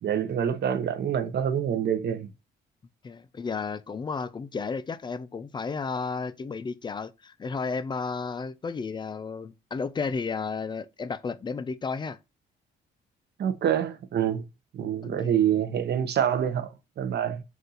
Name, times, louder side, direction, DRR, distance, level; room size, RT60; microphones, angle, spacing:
voice 1, 0.0-2.3 13.4-14.4 14.7-17.4, right 9 dB, 55° right, 0.7 m, -26 dB
voice 2, 3.0-12.2 15.0-15.3, left 4 dB, 25° left, 0.3 m, -33 dB
4.1 x 2.5 x 3.9 m
cardioid pair, 90°, 20 cm